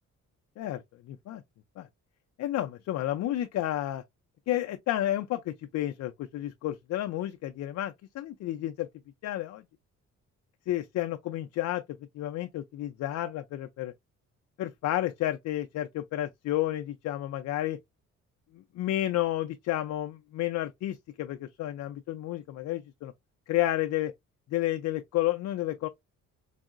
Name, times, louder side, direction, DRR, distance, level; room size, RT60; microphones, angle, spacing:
voice 1, 1.1-1.4 1.8-1.9 2.4-4.0 4.5-8.9 9.2-9.6 10.7-11.8 12.1-13.9 14.6-17.8 18.5-23.1 23.5-24.1 24.5-25.9, left 14 dB, 65° left, 0.4 m, -31 dB
4.6 x 2.0 x 2.4 m
cardioid pair, 90°, 30 cm